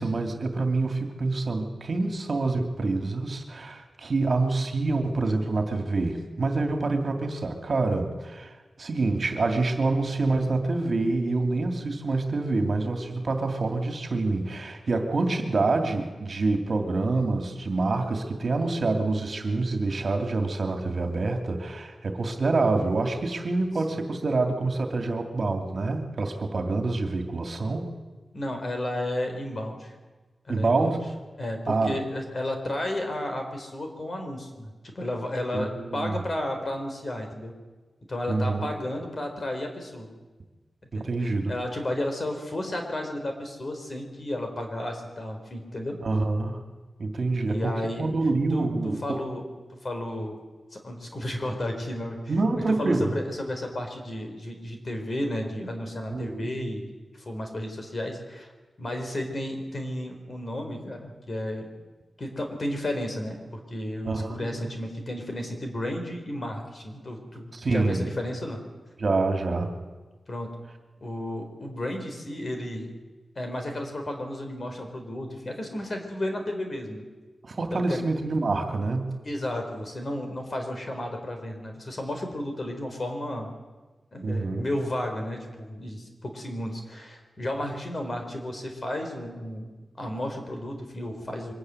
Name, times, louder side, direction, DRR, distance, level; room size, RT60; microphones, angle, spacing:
voice 1, 0.0-27.9 30.5-31.0 31.7-32.0 35.5-36.2 38.3-38.7 40.9-41.5 46.0-46.6 47.0-47.7 48.0-49.2 52.3-53.1 56.1-56.5 64.0-64.5 67.5-68.0 69.0-69.8 77.4-79.2 84.2-84.7, right 3 dB, 50° right, 5 dB, 2.6 m, -26 dB
voice 2, 28.3-29.9 30.5-31.0 31.4-37.5 38.1-40.1 40.9-46.0 47.4-48.1 48.5-49.4 49.8-50.4 50.7-52.2 52.8-56.9 57.1-58.5 58.8-61.7 62.2-68.6 70.3-70.5 71.0-72.9 73.4-77.0 77.7-78.1 79.2-83.5 84.1-89.7 90.0-91.5, left 1 dB, 40° left, 4 dB, 4.1 m, -33 dB
23.5 x 14.5 x 9.6 m, 1.3 s
wide cardioid pair, 130°, 0 cm